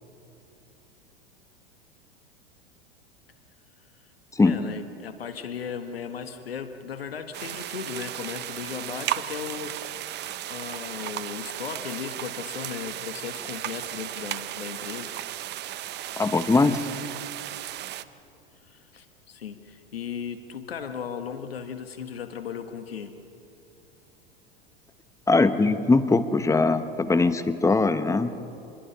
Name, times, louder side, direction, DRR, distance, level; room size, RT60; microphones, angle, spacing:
voice 1, 4.4-15.1 18.6-23.2 28.3-28.4, left 7 dB, 85° left, 8 dB, 1.5 m, -36 dB
sound 1, 7.3-18.0, right 13 dB, 35° right, 0.8 m, -35 dB
voice 2, 16.2-16.9 25.3-28.3, left 3 dB, 10° left, 11 dB, 1.1 m, -21 dB
27.0 x 22.0 x 5.7 m, 2.9 s
hypercardioid pair, 90°, 29 cm